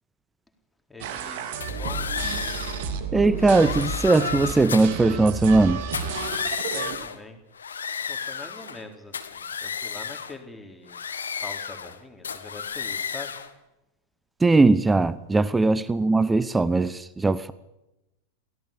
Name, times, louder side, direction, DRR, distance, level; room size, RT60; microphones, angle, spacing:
voice 1, 0.9-2.1 6.6-7.4 8.1-11.0 11.4-13.3 15.5-15.6, left 3 dB, 5° left, 3.9 m, -43 dB
sound 1, 1.0-7.0, right 5 dB, 50° right, 2.8 m, -32 dB
sound 2, 1.6-2.8 3.4-5.0 5.8-7.2 7.5-8.8 9.1-10.4 10.9-12.0 12.2-13.5, left 6 dB, 70° left, 2.0 m, -32 dB
voice 2, 3.1-5.8 14.4-17.5, right 3 dB, 10° right, 0.8 m, -20 dB
23.5 x 17.5 x 6.8 m
figure-of-eight pair, 90°, 0 cm